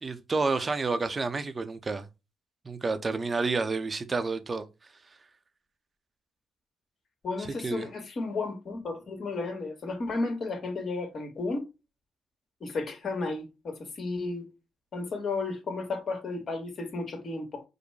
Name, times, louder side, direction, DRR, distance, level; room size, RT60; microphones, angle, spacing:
voice 1, 0.0-2.1 2.6-4.7 7.4-7.9, right 3 dB, 30° right, 0.7 m, -30 dB
voice 2, 7.2-11.7 12.6-14.5 14.9-17.6, left 3 dB, 50° left, 1.7 m, -33 dB
5.1 x 2.2 x 4.8 m
cardioid pair, 85°, 0 cm